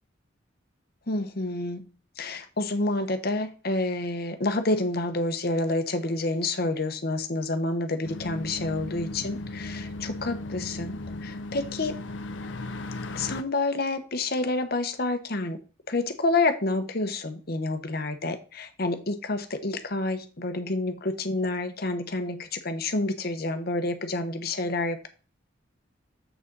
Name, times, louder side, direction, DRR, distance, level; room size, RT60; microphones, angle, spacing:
voice 1, 1.1-1.9 2.2-11.9 13.1-15.6 15.9-25.1, left 2 dB, 55° left, 8 dB, 1.0 m, -28 dB
sound 1, 8.0-13.4, left 2 dB, 70° left, 0.6 m, -36 dB
7.1 x 6.3 x 3.9 m, 0.38 s
head